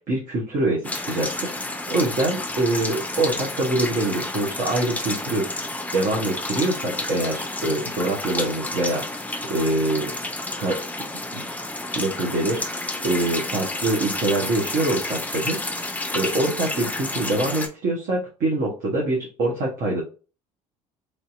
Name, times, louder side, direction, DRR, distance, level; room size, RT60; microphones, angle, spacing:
voice 1, 0.1-5.5 5.9-9.2 9.5-10.1 10.6-10.8 11.3-11.4 11.9-12.6 13.0-15.6 16.1-20.0, right 2 dB, 50° right, -3 dB, 1.0 m, -24 dB
sound 1, 0.8-17.7, left 2 dB, 10° left, 0.5 m, -30 dB
3.3 x 2.7 x 2.4 m, 0.35 s
figure-of-eight pair, 60°, 18 cm